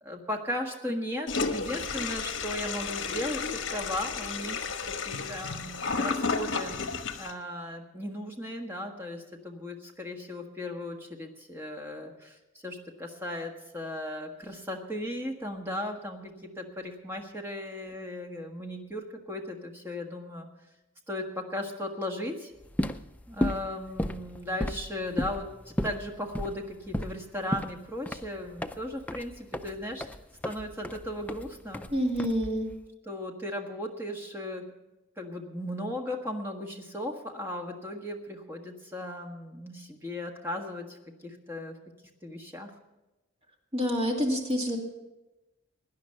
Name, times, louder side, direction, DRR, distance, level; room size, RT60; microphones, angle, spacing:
voice 1, 0.0-4.7 5.0-6.9 7.1-12.4 12.6-20.5 21.1-22.5 23.3-30.1 30.4-31.9 33.0-34.6 35.2-41.0 41.2-41.7 42.2-42.7, left 1 dB, 10° right, 2 dB, 1.5 m, -36 dB
Toilet flush, 1.3-7.3, left 4 dB, 65° left, 1.2 m, -32 dB
sound 1, 22.6-32.8, left 1 dB, 5° left, 0.4 m, -34 dB
voice 2, 31.9-32.7 43.7-44.8, equal, 30° right, 1 dB, 2.3 m, -27 dB
17.5 x 10.5 x 5.8 m, 1.0 s
head